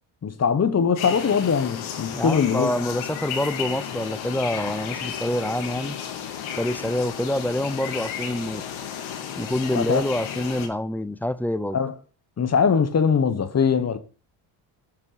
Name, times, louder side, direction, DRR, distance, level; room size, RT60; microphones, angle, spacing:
voice 1, 0.2-2.7 9.7-10.0 11.7-11.9 12.4-14.0, left 6 dB, 30° left, 1.1 m, -21 dB
sound 1, 1.0-10.7, left 8 dB, 75° left, 2.2 m, -33 dB
voice 2, 2.1-6.0 6.6-8.6 9.4-11.8, left 1 dB, 5° left, 0.4 m, -26 dB
9.0 x 5.5 x 4.9 m
cardioid pair, 90°, 48 cm